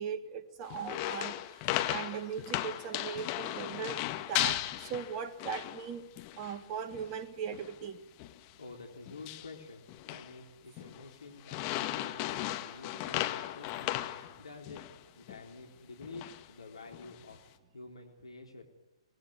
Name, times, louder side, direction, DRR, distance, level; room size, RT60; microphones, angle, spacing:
voice 1, 0.0-4.0 4.3-6.1 6.4-8.0, right 7 dB, 30° right, 9 dB, 1.6 m, -39 dB
sound 1, 0.7-5.9 6.2-6.6 6.9-7.1 7.5-7.8 8.2-8.4 9.1-9.5 9.9-10.3 10.8-11.0 11.4-15.0 15.3-15.4 16.0-16.4 16.9-17.4, left 15 dB, 30° left, 1.8 m, -36 dB
voice 2, 8.6-17.4 17.7-18.6, left 3 dB, 75° left, 2 dB, 3.7 m, -49 dB
25.0 x 20.0 x 9.7 m, 0.95 s
figure-of-eight pair, 120°, 3 cm